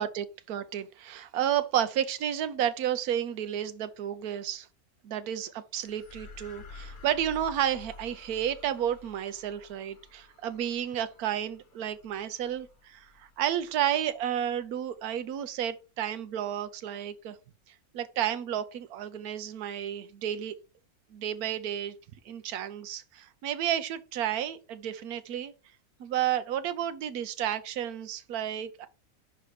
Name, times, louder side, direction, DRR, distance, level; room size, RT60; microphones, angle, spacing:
voice 1, 0.0-4.7 5.0-17.4 17.9-20.5 21.1-21.9 22.3-25.5 26.0-28.9, right 10 dB, 75° right, 1.2 m, -31 dB
sound 1, 5.8-14.4, left 4 dB, 35° left, 1.2 m, -51 dB
5.5 x 4.1 x 4.7 m
omnidirectional pair, 1.6 m